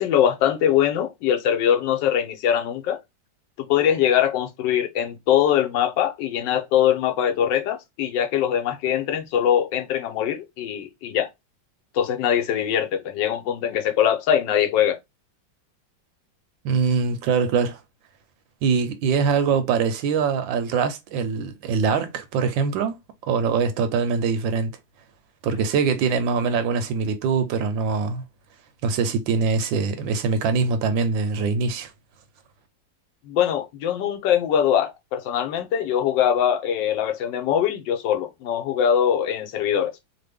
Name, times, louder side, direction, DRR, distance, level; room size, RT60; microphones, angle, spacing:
voice 1, 0.0-3.0 3.6-11.3 11.9-15.0 33.3-40.0, left 9 dB, 75° left, 1.3 m, -22 dB
voice 2, 16.6-17.8 18.6-23.0 23.3-24.7 25.4-28.2 28.8-31.9, right 5 dB, 85° right, 1.4 m, -23 dB
3.3 x 2.2 x 3.4 m
omnidirectional pair, 2.1 m